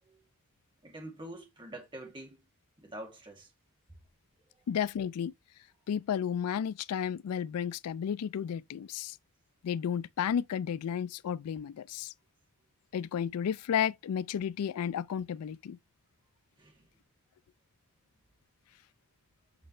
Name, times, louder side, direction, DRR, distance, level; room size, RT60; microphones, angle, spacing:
voice 1, 0.8-2.4 2.8-3.5 16.6-16.9, right 1 dB, 20° right, 2.3 m, -45 dB
voice 2, 4.7-5.3 5.9-9.2 9.6-12.1 12.9-15.8, left 8 dB, 90° left, 0.3 m, -32 dB
7.8 x 5.4 x 3.1 m
head